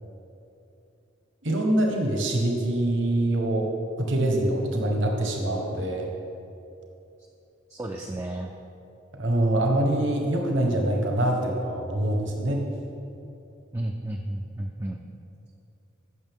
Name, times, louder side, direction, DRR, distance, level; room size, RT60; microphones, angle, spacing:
voice 1, 1.4-3.7 4.0-6.1 9.1-12.6, right 1 dB, 65° right, 1 dB, 1.2 m, -24 dB
voice 2, 7.7-8.5 13.7-15.0, right 1 dB, 15° right, 1 dB, 0.4 m, -32 dB
15.0 x 6.6 x 3.6 m, 2.8 s
head